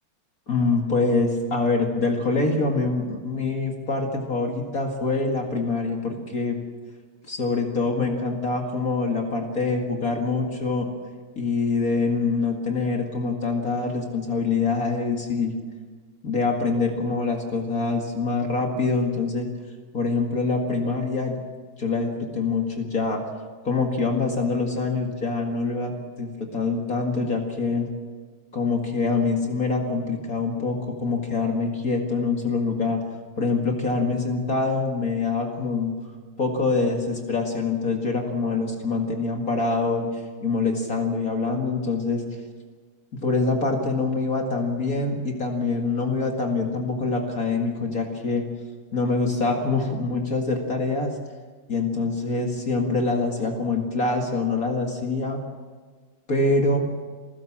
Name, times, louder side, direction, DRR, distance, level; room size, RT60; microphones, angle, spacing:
voice 1, 0.5-6.6 7.2-10.9 11.4-15.6 16.2-19.5 19.9-21.3 21.8-23.2 23.6-27.9 28.5-33.0 33.4-35.9 36.4-42.2 43.1-48.4 48.9-51.2 51.7-55.4 56.3-56.8, left 3 dB, 45° left, 2 dB, 2.4 m, -25 dB
28.0 x 15.0 x 7.4 m, 1.5 s
omnidirectional pair, 2.3 m